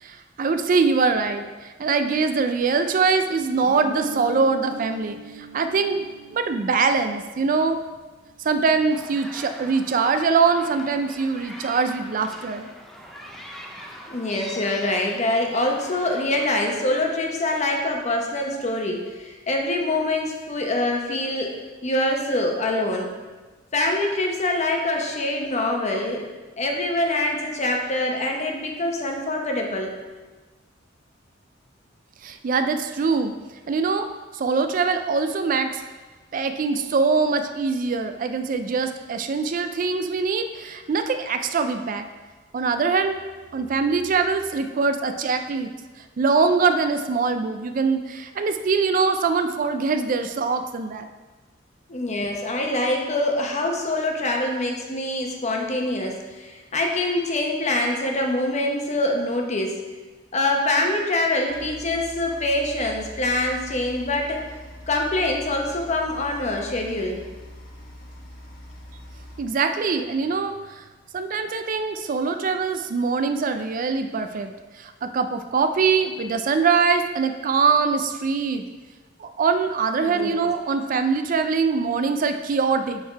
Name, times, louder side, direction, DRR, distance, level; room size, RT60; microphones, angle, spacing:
voice 1, 0.0-7.8 8.4-12.7 32.2-33.3 33.7-34.1 34.3-35.8 36.3-42.0 42.5-43.2 43.5-45.7 46.2-51.1 69.4-70.8 71.1-78.6 79.2-83.0, right 4 dB, 45° right, 8 dB, 0.4 m, -23 dB
Guitar, 3.6-8.2, right 1 dB, 70° right, 1.2 m, -39 dB
sound 1, 8.9-16.5, equal, ahead, 0.6 m, -42 dB
voice 2, 14.1-23.1 23.7-26.3 26.6-29.9 51.9-59.8 60.3-64.4 64.9-67.2 80.0-80.4, left 1 dB, 35° left, 1 dB, 0.9 m, -25 dB
sound 2, 61.5-69.4, equal, 55° left, 1.3 m, -42 dB
6.6 x 4.5 x 4.5 m, 1.3 s
head